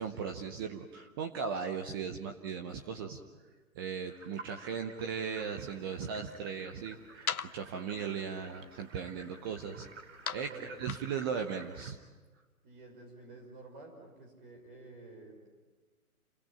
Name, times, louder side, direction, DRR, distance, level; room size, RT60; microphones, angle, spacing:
voice 1, 0.0-3.2 3.8-12.0, right 6 dB, 15° right, 5 dB, 0.8 m, -38 dB
sound 1, 4.1-11.9, right 4 dB, 55° right, 3.2 m, -53 dB
sound 2, 5.4-11.8, left 7 dB, 75° left, 1.0 m, -45 dB
voice 2, 10.4-10.8 12.6-15.5, right 3 dB, 35° right, 3 dB, 6.0 m, -50 dB
29.0 x 23.0 x 8.8 m, 1.3 s
figure-of-eight pair, 135°, 44 cm